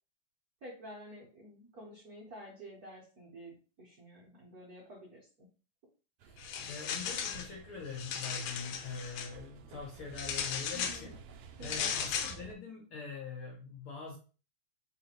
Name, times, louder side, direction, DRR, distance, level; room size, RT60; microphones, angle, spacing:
voice 1, 0.6-5.5 10.7-11.1 11.6-12.0, equal, 70° right, -4 dB, 0.8 m, -50 dB
voice 2, 6.2-14.2, left 5 dB, 70° left, -2 dB, 1.3 m, -44 dB
sound 1, 6.2-12.5, right 6 dB, 85° right, 1.3 m, -52 dB
sound 2, 6.4-7.5 7.9-9.3 10.2-11.0 11.6-12.4, left 7 dB, 90° left, 2.0 m, -36 dB
3.9 x 3.9 x 2.9 m, 0.36 s
omnidirectional pair, 3.3 m